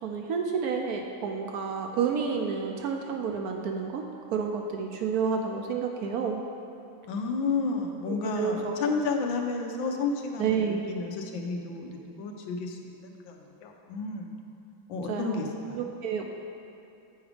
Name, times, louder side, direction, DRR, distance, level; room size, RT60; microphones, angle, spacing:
voice 1, 0.0-6.4 8.1-8.9 10.4-10.9 15.1-15.4 15.7-16.2, right 6 dB, 75° right, 3 dB, 0.8 m, -30 dB
voice 2, 7.1-14.3 14.9-15.9, left 4 dB, 85° left, 2 dB, 1.4 m, -32 dB
8.0 x 4.9 x 4.9 m, 2.7 s
omnidirectional pair, 2.1 m